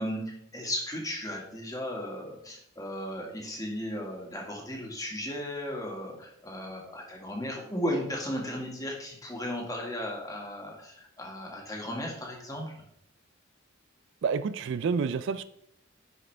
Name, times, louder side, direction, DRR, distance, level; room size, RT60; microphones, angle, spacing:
voice 1, 0.0-12.8, equal, 20° left, -1 dB, 1.8 m, -35 dB
voice 2, 14.2-15.4, right 5 dB, 65° right, 14 dB, 0.3 m, -29 dB
10.5 x 4.9 x 3.3 m, 0.72 s
head